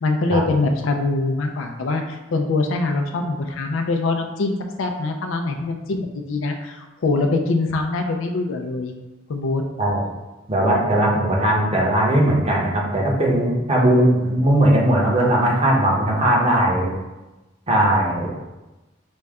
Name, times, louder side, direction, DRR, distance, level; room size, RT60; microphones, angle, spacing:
voice 1, 0.0-8.9 9.3-9.6, left 3 dB, 80° left, 4 dB, 0.4 m, -23 dB
voice 2, 10.5-16.9 17.7-18.3, right 1 dB, 30° right, -3 dB, 0.9 m, -18 dB
5.2 x 2.2 x 3.5 m, 1.1 s
head